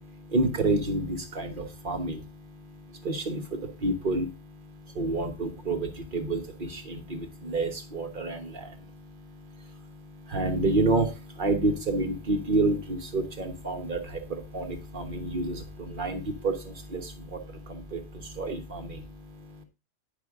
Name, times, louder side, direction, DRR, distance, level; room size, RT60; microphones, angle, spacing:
voice 1, 0.0-19.6, right 2 dB, 45° right, 6 dB, 1.4 m, -30 dB
9.8 x 5.7 x 3.6 m, 0.28 s
omnidirectional pair, 1.3 m